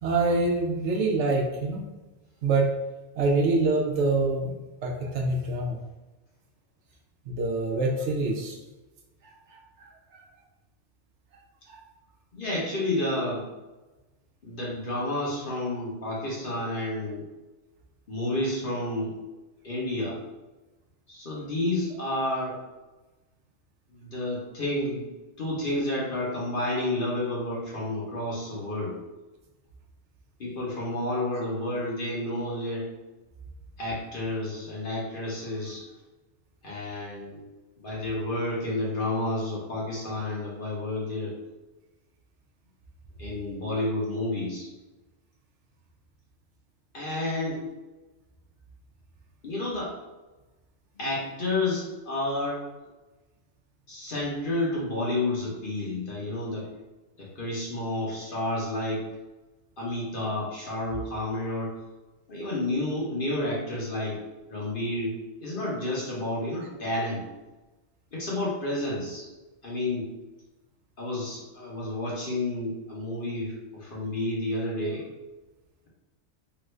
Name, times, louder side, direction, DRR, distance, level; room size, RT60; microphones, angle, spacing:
voice 1, 0.0-1.8 2.4-2.7 3.2-4.5 4.8-5.8 7.3-8.6 9.2-10.2 11.7-11.8, right 3 dB, 70° right, 0 dB, 0.9 m, -26 dB
voice 2, 12.3-13.4 14.4-17.3 18.1-19.2 19.6-20.2 21.1-22.6 23.9-25.1 25.4-29.0 30.4-32.8 33.8-35.8 36.6-37.4 37.8-41.3 43.2-44.7 46.9-47.6 49.4-49.9 51.0-52.6 53.9-56.7 57.2-59.1 59.8-61.7 62.3-64.2 64.5-67.2 68.1-69.3 69.6-70.1 71.0-75.0, left 1 dB, 50° left, -5 dB, 1.0 m, -30 dB
3.0 x 2.5 x 3.2 m, 1.1 s
omnidirectional pair, 1.3 m